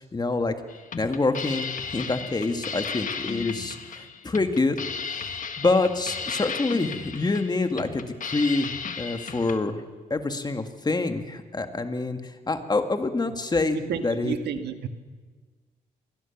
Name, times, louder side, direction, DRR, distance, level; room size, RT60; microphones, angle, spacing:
voice 1, 0.1-0.5 0.9-4.8 5.6-8.7 9.0-9.8 10.1-14.3, left 3 dB, 25° left, 1.9 m, -26 dB
sound 1, 0.7-9.6, left 6 dB, 50° left, 1.8 m, -35 dB
voice 2, 13.7-14.9, right 7 dB, 75° right, 1.7 m, -31 dB
22.5 x 17.0 x 7.3 m
cardioid pair, 90°, 17 cm